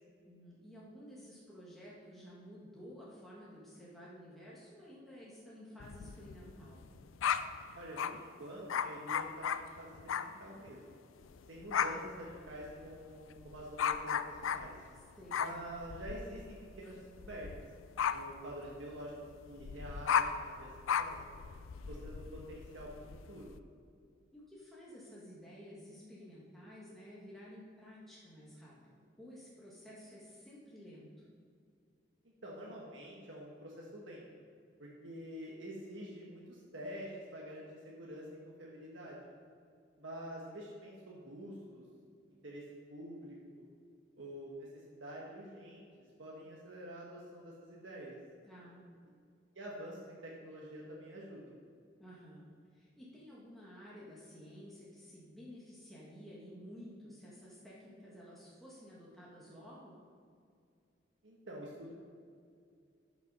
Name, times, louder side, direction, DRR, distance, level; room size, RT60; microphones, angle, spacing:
voice 1, 0.2-6.8 14.9-15.4 24.3-31.2 48.4-48.8 52.0-59.9, equal, ahead, -7 dB, 1.5 m, -53 dB
sound 1, 5.8-8.2 8.7-10.4 10.7-10.9 11.2-23.6, left 7 dB, 90° left, 0.4 m, -36 dB
voice 2, 7.7-10.8 11.5-14.7 15.4-17.5 18.1-19.1 19.4-20.7 21.0-21.2 21.9-22.9 23.3-23.5 32.4-34.2 34.8-39.3 40.0-41.8 42.4-42.6 42.9-43.7 44.2-45.9 46.2-48.2 49.5-51.6 61.2-61.9, equal, 75° right, -4 dB, 1.4 m, -47 dB
12.0 x 6.0 x 5.4 m, 2.3 s
head